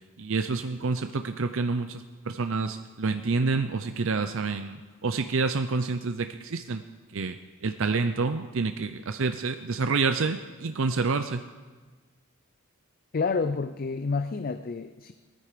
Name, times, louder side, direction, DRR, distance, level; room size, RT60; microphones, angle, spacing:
voice 1, 0.2-4.8 5.0-6.8 7.1-7.4 7.6-11.4, right 4 dB, 65° right, 8 dB, 0.6 m, -28 dB
voice 2, 13.1-15.1, left 4 dB, 45° left, 10 dB, 0.5 m, -29 dB
19.5 x 14.0 x 5.1 m, 1.4 s
head